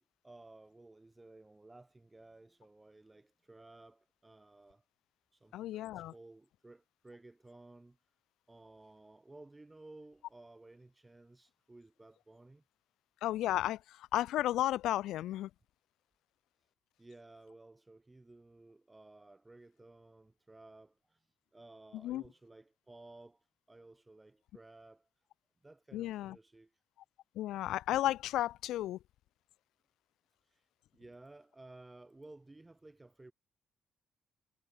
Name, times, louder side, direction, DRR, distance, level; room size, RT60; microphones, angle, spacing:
voice 1, 0.0-4.8 5.3-8.0 8.5-12.6 17.0-25.1 25.6-26.8 30.4-33.3, right 2 dB, 15° right, 4.6 m, -56 dB
voice 2, 5.5-6.1 13.2-15.5 22.0-22.2 25.9-26.4 27.4-29.0, left 14 dB, 85° left, 0.3 m, -33 dB
cardioid pair, 90°, 0 cm